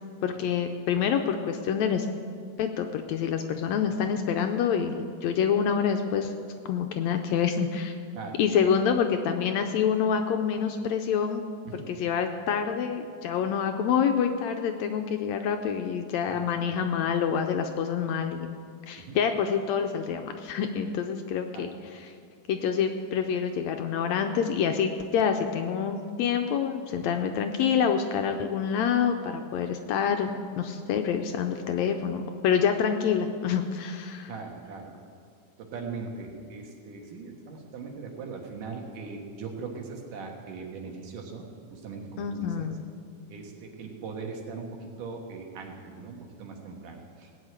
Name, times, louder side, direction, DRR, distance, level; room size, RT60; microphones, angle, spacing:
voice 1, 0.2-2.1 2.6-6.3 6.6-8.0 8.4-11.4 11.9-18.5 18.9-22.1 22.5-34.3 42.2-42.8, left 7 dB, 80° left, 6 dB, 1.7 m, -27 dB
voice 2, 16.3-16.8 19.0-19.2 21.5-21.7 27.0-27.1 34.3-34.9 35.6-42.7 43.3-47.3, right 4 dB, 85° right, 1 dB, 3.2 m, -40 dB
17.5 x 6.4 x 8.8 m, 2.2 s
omnidirectional pair, 3.6 m